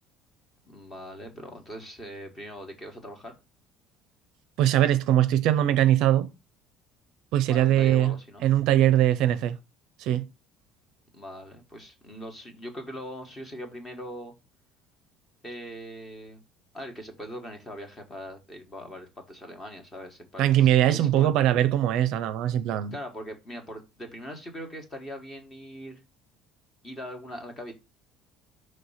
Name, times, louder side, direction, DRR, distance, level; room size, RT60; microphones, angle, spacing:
voice 1, 0.7-3.3 7.4-8.5 11.1-14.3 15.4-16.4 16.7-21.3 22.9-26.0 26.8-27.7, equal, 15° left, 1.3 m, -41 dB
voice 2, 4.6-6.3 7.3-8.1 8.4-9.6 10.0-10.3 20.4-22.9, right 12 dB, 55° right, 0.5 m, -21 dB
5.8 x 3.2 x 5.5 m
cardioid pair, 175°, 0 cm